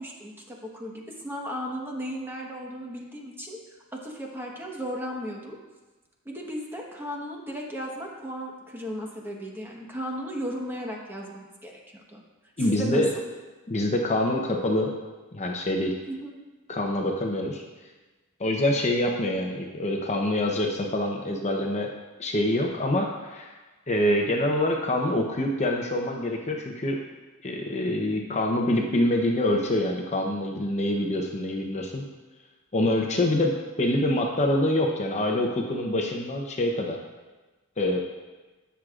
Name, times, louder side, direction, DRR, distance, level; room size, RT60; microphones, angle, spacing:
voice 1, 0.0-3.6 3.9-5.6 6.2-11.7 12.1-12.2 12.6-13.0 16.0-16.3, equal, 10° right, -1 dB, 1.2 m, -35 dB
voice 2, 12.6-13.1 13.7-14.9 15.3-16.0 16.7-17.6 18.4-21.9 22.2-23.5 23.9-27.0 27.4-32.1 32.7-37.0 37.8-38.0, left 1 dB, 30° left, 1 dB, 0.8 m, -25 dB
18.0 x 6.4 x 2.5 m, 1.2 s
head